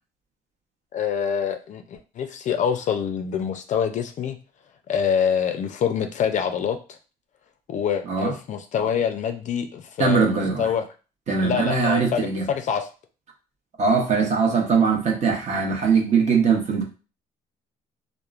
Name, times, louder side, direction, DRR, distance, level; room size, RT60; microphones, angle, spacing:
voice 1, 0.9-4.4 4.9-7.0 7.7-10.8 11.4-12.9, left 7 dB, 45° left, 7 dB, 0.4 m, -25 dB
voice 2, 10.0-10.7 11.3-12.5 13.8-16.8, right 5 dB, 40° right, 1 dB, 0.8 m, -21 dB
2.9 x 2.1 x 2.4 m, 0.34 s
cardioid pair, 110°, 17 cm